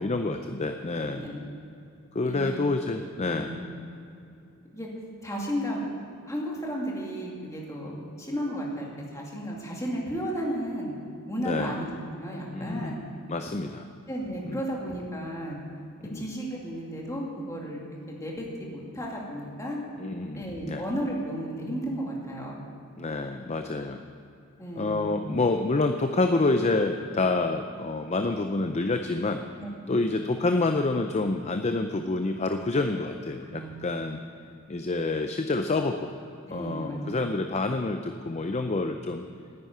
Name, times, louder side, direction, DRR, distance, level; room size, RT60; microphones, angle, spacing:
voice 1, 0.0-1.2 2.1-3.5 11.4-11.8 12.5-13.0 13.3-13.9 14.4-14.6 16.0-16.3 20.0-20.8 23.0-24.0 24.8-29.4 29.9-34.2 34.7-36.1 36.5-39.3, left 3 dB, 30° left, 6 dB, 0.5 m, -28 dB
voice 2, 1.0-1.4 2.2-2.6 3.3-3.7 4.7-4.9 5.2-5.8 6.3-10.9 11.3-13.0 14.1-15.6 16.1-17.8 18.1-19.8 20.3-22.6 24.6-25.0 29.6-30.0 33.4-34.1 36.5-37.2, equal, 15° left, -3 dB, 2.3 m, -34 dB
9.9 x 9.7 x 9.3 m, 2.6 s
head